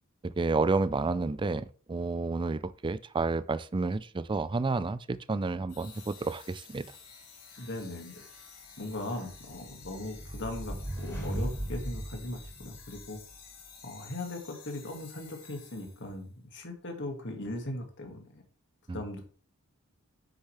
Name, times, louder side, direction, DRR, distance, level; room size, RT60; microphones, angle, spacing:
voice 1, 0.2-6.9 18.9-19.0, right 3 dB, 20° right, 0.4 m, -30 dB
sound 1, 5.7-16.2, left 6 dB, 85° left, 4.2 m, -52 dB
voice 2, 7.6-8.2 8.8-13.2 13.8-18.4 18.9-19.2, left 1 dB, 55° left, 2.1 m, -39 dB
sound 2, 9.3-13.2, right 1 dB, 15° left, 3.6 m, -37 dB
9.9 x 6.9 x 3.3 m
head